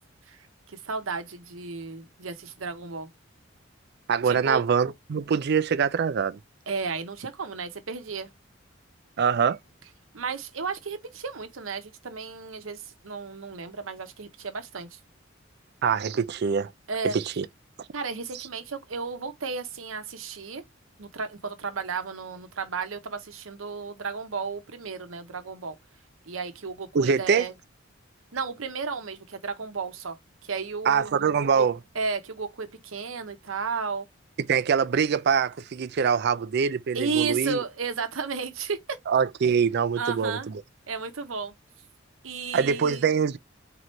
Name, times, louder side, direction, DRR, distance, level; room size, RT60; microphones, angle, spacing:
voice 1, 0.7-3.1 4.2-4.6 6.7-8.3 10.1-15.0 16.9-17.1 17.9-20.6 21.0-25.8 26.3-27.5 28.3-30.2 30.5-31.3 31.5-31.6 31.9-34.1 36.9-38.8 40.0-40.5 40.9-41.5 42.2-43.0, right 5 dB, 80° right, 0.9 m, -33 dB
voice 2, 4.1-6.4 9.2-9.6 15.8-16.7 17.0-17.5 26.9-27.5 30.9-31.8 34.5-37.6 39.1-40.5 42.5-43.4, right 6 dB, 55° right, 0.4 m, -24 dB
3.8 x 3.0 x 3.1 m
head